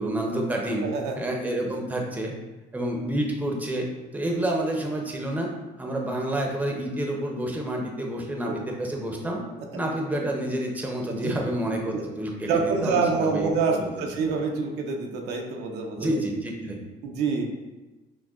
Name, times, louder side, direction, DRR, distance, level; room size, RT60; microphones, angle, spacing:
voice 1, 0.0-0.9 1.2-2.3 2.7-3.9 4.1-5.5 5.8-9.4 9.7-14.3 16.0-16.9, right 1 dB, 10° right, 0 dB, 0.6 m, -29 dB
voice 2, 12.5-16.2 17.0-17.4, right 4 dB, 90° right, 2 dB, 0.6 m, -26 dB
6.0 x 2.2 x 2.4 m, 1.1 s
cardioid pair, 110°, 17 cm